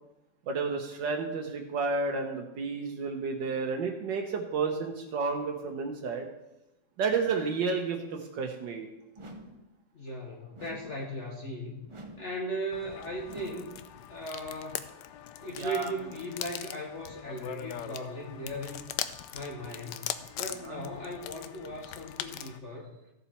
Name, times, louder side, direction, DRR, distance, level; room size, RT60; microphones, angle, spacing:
voice 1, 0.5-6.3 7.0-8.9 15.6-15.9 20.6-20.8, right 4 dB, 80° right, 3 dB, 1.6 m, -31 dB
sound 1, 9.2-9.7 10.6-11.1 11.9-12.4 13.3-13.8, right 2 dB, 35° right, 0.5 m, -47 dB
voice 2, 9.9-11.9 12.2-13.7 14.1-14.9 15.4-18.9 19.3-22.9, equal, 45° left, -1 dB, 1.5 m, -38 dB
sound 2, 12.7-22.6, left 11 dB, 80° left, 1.2 m, -41 dB
15.0 x 7.0 x 4.4 m, 0.95 s
omnidirectional pair, 1.9 m